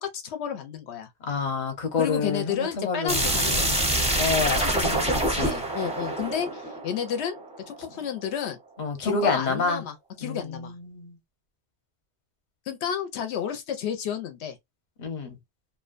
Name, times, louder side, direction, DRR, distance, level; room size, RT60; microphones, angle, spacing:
voice 1, 0.0-1.1 2.0-3.7 4.5-5.3 5.7-7.4 7.7-8.6 9.0-10.7 12.7-14.6, left 8 dB, 80° left, 0.8 m, -31 dB
voice 2, 1.2-3.8 4.2-5.6 8.8-9.8 10.2-11.2 15.0-15.4, left 4 dB, 45° left, 0.8 m, -28 dB
sound 1, 3.1-7.8, right 1 dB, 10° right, 0.4 m, -26 dB
2.6 x 2.2 x 2.4 m
omnidirectional pair, 1.1 m